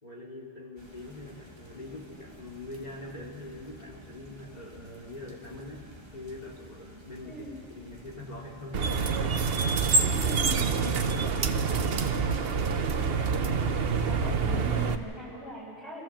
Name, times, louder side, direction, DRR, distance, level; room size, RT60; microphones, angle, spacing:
voice 1, 0.0-7.4 7.7-8.8 10.8-11.3 11.7-12.1, left 2 dB, 35° left, -1 dB, 3.1 m, -44 dB
sound 1, 0.8-9.8, right 1 dB, 25° right, 2.0 m, -51 dB
sound 2, 8.7-15.0, right 5 dB, 55° right, 1.0 m, -26 dB
voice 2, 10.2-10.8 14.0-16.0, equal, ahead, -6 dB, 7.9 m, -41 dB
25.0 x 15.0 x 7.5 m, 2.2 s
omnidirectional pair, 1.2 m